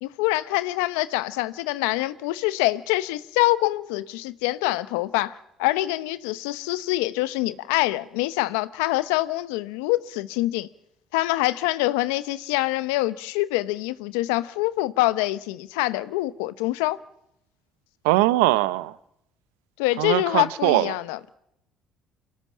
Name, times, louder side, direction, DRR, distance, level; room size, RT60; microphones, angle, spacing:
voice 1, 0.0-10.7 11.1-17.0 19.8-21.2, left 18 dB, 80° left, 0.9 m, -25 dB
voice 2, 18.0-18.9 20.0-20.9, right 18 dB, 85° right, 0.8 m, -21 dB
24.0 x 18.0 x 7.4 m
hypercardioid pair, 65°, 0 cm